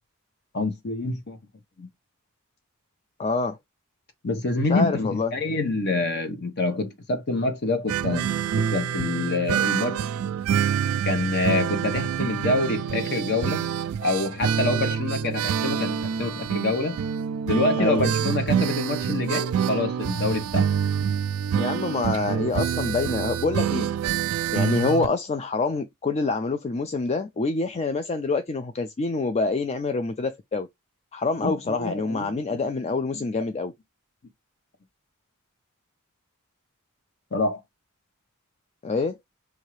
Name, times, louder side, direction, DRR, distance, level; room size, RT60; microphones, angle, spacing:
voice 1, 0.5-1.4 1.8-1.9 4.2-8.3 8.6-10.0 11.0-13.7 14.0-17.0 17.5-20.7 31.4-32.6 33.1-33.3 37.3-37.6, left 2 dB, 50° left, 1.1 m, -26 dB
voice 2, 3.2-3.6 4.7-5.3 17.8-18.1 21.6-23.9 24.5-30.7 31.1-33.7 38.8-39.2, left 3 dB, 30° left, 0.4 m, -26 dB
sound 1, 7.9-25.1, right 8 dB, 75° right, 0.3 m, -26 dB
4.7 x 2.7 x 3.1 m
head